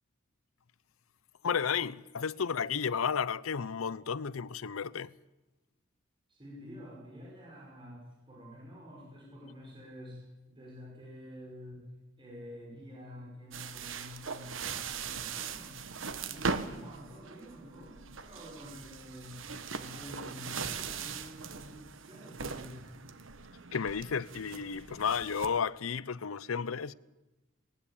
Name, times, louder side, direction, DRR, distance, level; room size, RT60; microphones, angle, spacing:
voice 1, 1.4-5.1 23.7-26.9, left 6 dB, 85° left, 0.6 m, -32 dB
voice 2, 6.3-11.9 12.2-15.8 16.2-22.8, equal, 25° right, 5.7 m, -48 dB
sound 1, 13.5-25.5, right 5 dB, 65° right, 1.3 m, -40 dB
19.5 x 18.5 x 8.7 m
head